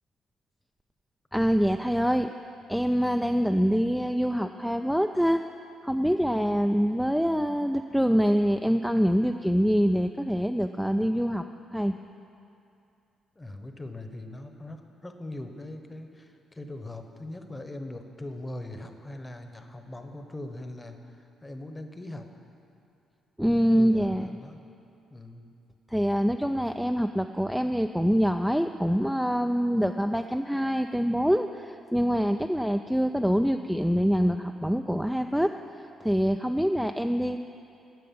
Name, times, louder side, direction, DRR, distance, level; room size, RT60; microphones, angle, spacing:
voice 1, 1.3-2.3 2.7-5.4 5.8-11.4 11.7-12.0 23.4-24.3 25.9-35.5 36.0-37.4, equal, ahead, 6 dB, 0.3 m, -25 dB
voice 2, 13.4-22.3 23.7-24.6 25.1-25.5, left 1 dB, 20° left, 6 dB, 0.9 m, -41 dB
9.2 x 6.7 x 8.5 m, 2.6 s
cardioid pair, 90°, 0 cm